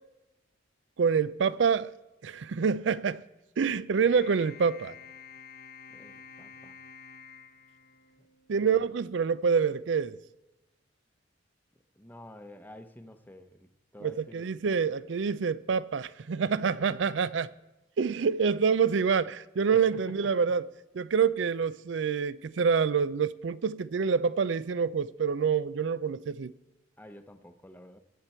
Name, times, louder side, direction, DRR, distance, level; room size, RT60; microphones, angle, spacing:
voice 1, 1.0-1.9 2.2-3.2 3.6-4.9 8.5-10.2 14.0-17.5 18.0-20.6 20.9-26.5, right 6 dB, 70° right, 0.4 m, -27 dB
sound 1, 4.1-8.6, left 6 dB, 55° left, 0.8 m, -50 dB
voice 2, 5.9-6.8 8.2-8.3 8.6-8.8 11.9-14.5 16.9-17.0 19.9-20.5 27.0-28.0, left 1 dB, 10° left, 0.8 m, -50 dB
21.0 x 7.5 x 4.4 m
head